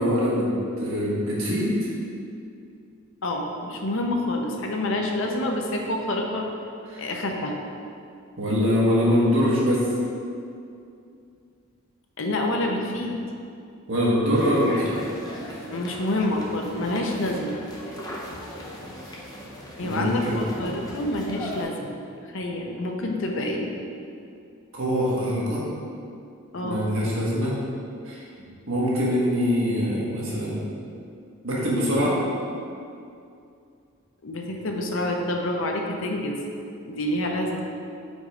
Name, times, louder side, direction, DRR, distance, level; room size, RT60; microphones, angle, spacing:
voice 1, 0.0-1.9 6.9-7.0 8.4-9.9 13.9-15.0 19.8-20.4 24.7-25.7 26.6-27.6 28.0-28.2 28.7-30.7 31.4-32.2, equal, 65° right, -6 dB, 1.5 m, -23 dB
voice 2, 3.2-6.5 7.0-7.5 12.2-13.2 15.7-17.6 19.8-22.0 22.3-23.7 26.5-26.9 34.2-36.4 36.8-37.7, left 1 dB, 65° left, 1 dB, 0.7 m, -27 dB
sound 1, 14.3-21.6, left 1 dB, 20° left, 0.7 m, -38 dB
5.3 x 4.1 x 5.0 m, 2.4 s
head